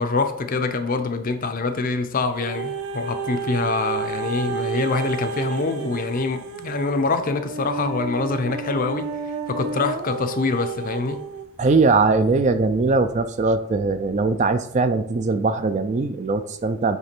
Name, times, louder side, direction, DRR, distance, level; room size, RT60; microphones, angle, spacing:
voice 1, 0.0-9.1 9.5-11.2, left 3 dB, 40° left, 0.5 m, -25 dB
sound 1, 2.4-11.5 12.1-12.2, right 4 dB, 85° right, 0.6 m, -31 dB
voice 2, 11.6-17.0, right 3 dB, 35° right, 0.3 m, -20 dB
8.1 x 3.3 x 4.4 m
head